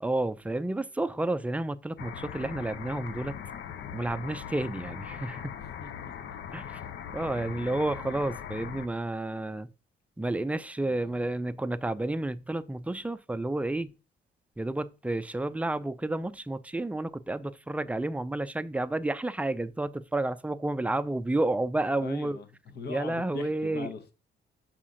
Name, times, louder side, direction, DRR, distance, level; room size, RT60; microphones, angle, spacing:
voice 1, 0.0-3.4 3.9-5.5 6.5-6.8 7.1-9.7 10.2-13.9 14.6-22.4 22.9-23.9, right 2 dB, 5° right, 0.4 m, -31 dB
sound 1, 2.0-8.9, left 8 dB, 70° left, 0.6 m, -40 dB
voice 2, 10.9-11.3 22.0-24.1, left 4 dB, 55° left, 1.0 m, -41 dB
6.1 x 4.2 x 3.8 m
cardioid pair, 90°, 20 cm